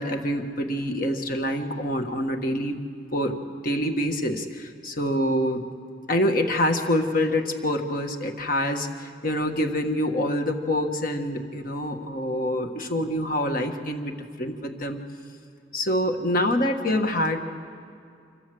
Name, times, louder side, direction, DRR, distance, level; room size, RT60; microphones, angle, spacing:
voice 1, 0.0-2.8 3.1-3.4 3.6-5.6 6.1-14.1 14.4-15.0 15.7-17.4, left 1 dB, 50° left, 5 dB, 1.6 m, -26 dB
26.5 x 15.5 x 7.9 m, 2.4 s
head